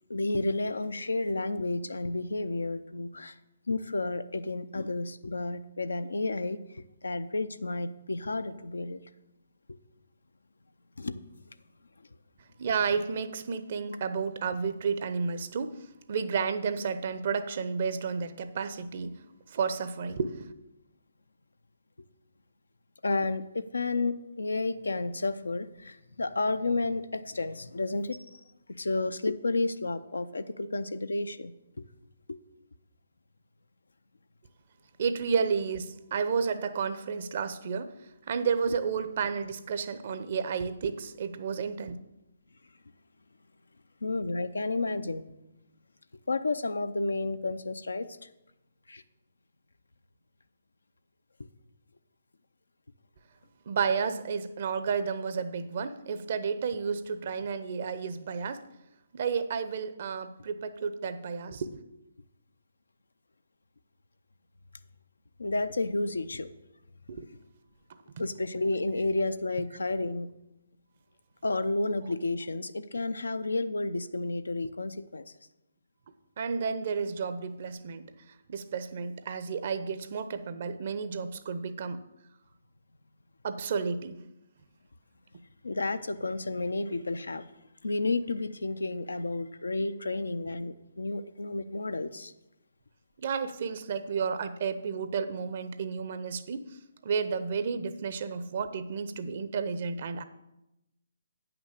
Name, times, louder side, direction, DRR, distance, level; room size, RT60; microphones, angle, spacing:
voice 1, 0.1-3.4 3.7-9.0 9.7-9.8 11.0-11.2 23.0-28.4 28.7-31.5 31.8-31.9 32.3-32.4 44.0-45.2 46.3-48.3 48.9-49.0 65.4-66.5 68.2-70.3 71.4-75.3 85.6-87.4 87.8-92.3, left 2 dB, 75° left, 11 dB, 0.6 m, -31 dB
voice 2, 12.6-15.8 16.1-19.2 19.5-20.5 35.0-37.9 38.3-42.0 53.7-58.6 59.1-61.8 67.1-67.3 76.4-78.1 78.5-82.0 83.4-84.2 93.2-96.6 97.0-100.2, right 5 dB, 50° right, 11 dB, 0.8 m, -31 dB
9.3 x 6.0 x 6.7 m, 0.91 s
figure-of-eight pair, 135°, 0 cm